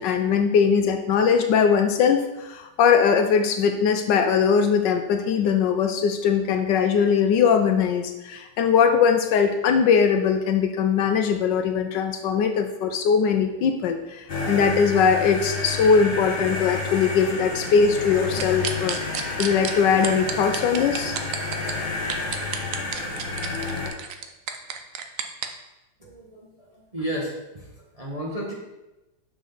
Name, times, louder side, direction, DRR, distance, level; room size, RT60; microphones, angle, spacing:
voice 1, 0.0-19.0 19.4-21.2, left 6 dB, 75° left, 6 dB, 1.2 m, -21 dB
sound 1, 14.3-23.9, left 3 dB, 35° left, 1.0 m, -30 dB
sound 2, 18.4-19.7 20.0-21.7 22.1-25.5, right 8 dB, 75° right, 0.7 m, -30 dB
voice 2, 26.0-27.6 27.9-28.5, right 1 dB, 25° right, -4 dB, 0.9 m, -33 dB
6.1 x 6.0 x 3.9 m, 1.0 s
omnidirectional pair, 2.1 m